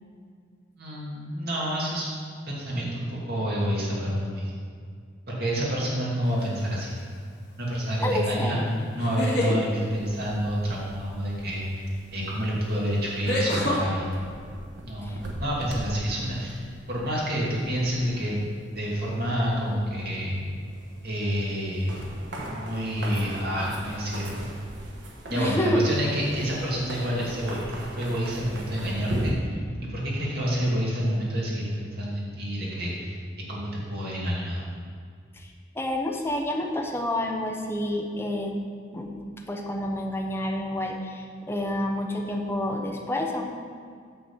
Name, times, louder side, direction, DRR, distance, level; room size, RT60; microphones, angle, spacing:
voice 1, 0.8-2.1 2.5-4.5 5.3-6.9 7.6-14.3 14.9-16.6 16.9-18.4 18.7-20.4 21.0-21.9 22.4-24.5 25.3-29.6 29.9-33.2 33.5-34.7, equal, 55° right, -5 dB, 2.3 m, -28 dB
sound 1, 6.4-6.8 8.9-9.6 11.9-12.0 13.2-13.8, left 1 dB, 55° left, 2.4 m, -26 dB
voice 2, 8.0-8.7 15.0-15.2 25.3-25.8 35.3-38.5 38.9-39.1 39.5-43.4, left 1 dB, 15° left, 1 dB, 0.8 m, -29 dB
sound 2, 9.9-29.3, right 1 dB, 70° right, 1.2 m, -40 dB
8.8 x 4.0 x 7.1 m, 2.1 s
head